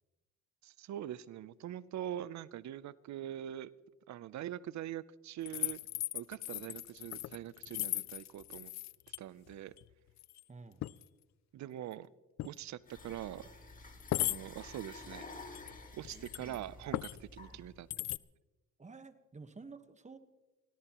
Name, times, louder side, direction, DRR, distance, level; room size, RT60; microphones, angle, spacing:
voice 1, 0.6-3.7 4.1-5.8 6.1-8.7 9.2-9.7 11.5-12.1 12.4-13.5 14.2-15.2 15.9-17.9, right 11 dB, 65° right, 19 dB, 0.6 m, -43 dB
sound 1, 5.5-9.2 9.5-9.9 10.2-10.4 10.8-11.0 12.4-12.5 13.1-13.2 14.0-14.4 15.5-16.6 16.9-17.2 17.9-18.2, left 16 dB, 65° left, 0.4 m, -38 dB
voice 2, 10.5-10.8 14.1-14.3 16.1-16.6 17.5-17.6 18.8-20.2, right 4 dB, 25° right, 10 dB, 1.3 m, -52 dB
sound 2, 12.9-17.9, left 3 dB, 25° left, 2.7 m, -51 dB
24.5 x 17.5 x 3.0 m, 1.1 s
cardioid pair, 90°, 30 cm